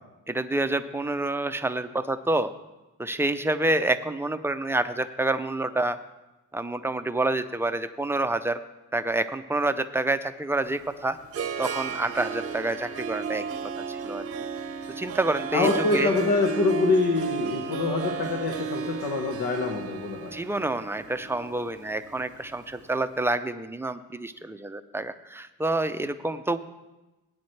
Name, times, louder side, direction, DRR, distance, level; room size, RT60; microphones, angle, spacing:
voice 1, 0.3-2.5 3.0-6.0 6.5-8.6 8.9-11.2 11.6-13.4 13.9-14.2 15.0-16.1 20.3-26.6, right 2 dB, 5° right, 9 dB, 0.4 m, -28 dB
Harp, 10.7-22.8, right 6 dB, 40° right, 0.7 m, -34 dB
voice 2, 15.5-20.3, left 3 dB, 90° left, 2 dB, 1.4 m, -25 dB
17.0 x 9.4 x 3.2 m, 1.0 s
wide cardioid pair, 155°, 35 cm